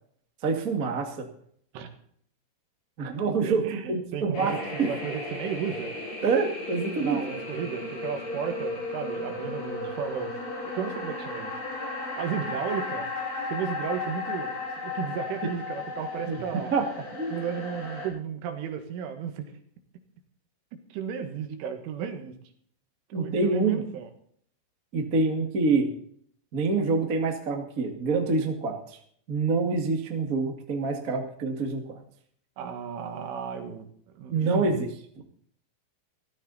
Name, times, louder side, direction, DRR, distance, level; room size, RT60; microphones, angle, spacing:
voice 1, 0.4-1.2 3.0-4.9 6.2-7.2 16.3-16.4 16.7-16.9 17.1-17.3 23.1-23.8 24.9-25.9 26.5-28.8 29.3-32.0 34.3-34.9 35.1-35.2, right 4 dB, 55° right, 3 dB, 0.9 m, -26 dB
voice 2, 3.4-5.9 7.0-10.3 10.8-11.5 12.2-13.1 13.5-14.6 14.8-16.7 17.3-19.5 20.9-22.4 23.1-24.1 32.6-33.9 34.1-34.7, right 8 dB, 80° right, 6 dB, 4.2 m, -34 dB
sound 1, 4.3-18.1, left 2 dB, 45° left, 6.3 m, -35 dB
15.5 x 14.0 x 4.2 m, 0.62 s
omnidirectional pair, 5.7 m